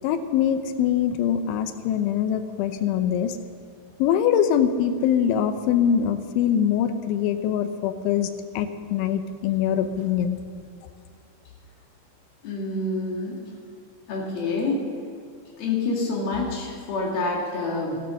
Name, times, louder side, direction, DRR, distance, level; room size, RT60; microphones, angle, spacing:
voice 1, 0.0-3.4 4.0-8.3 8.5-10.4, left 9 dB, 85° left, 9 dB, 3.2 m, -23 dB
voice 2, 12.4-13.4 14.1-14.9 15.6-18.0, left 3 dB, 60° left, -1 dB, 3.6 m, -27 dB
13.0 x 12.5 x 6.3 m, 2.3 s
omnidirectional pair, 5.3 m